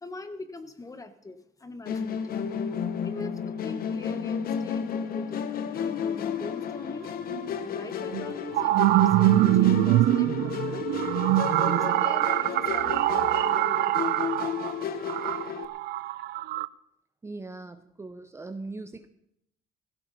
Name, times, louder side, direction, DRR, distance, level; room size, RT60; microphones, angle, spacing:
voice 1, 0.0-2.4 3.0-5.4 5.7-7.3 7.6-14.2, left 2 dB, 20° left, 10 dB, 1.4 m, -43 dB
Musical instrument, 1.9-15.7, left 7 dB, 60° left, 1.2 m, -32 dB
sound 1, 7.3-7.4 8.1-16.7, right 15 dB, 75° right, 0.5 m, -24 dB
voice 2, 17.2-19.1, right 3 dB, 15° right, 9 dB, 0.8 m, -40 dB
16.0 x 16.0 x 4.2 m, 0.74 s
cardioid pair, 110°, 17 cm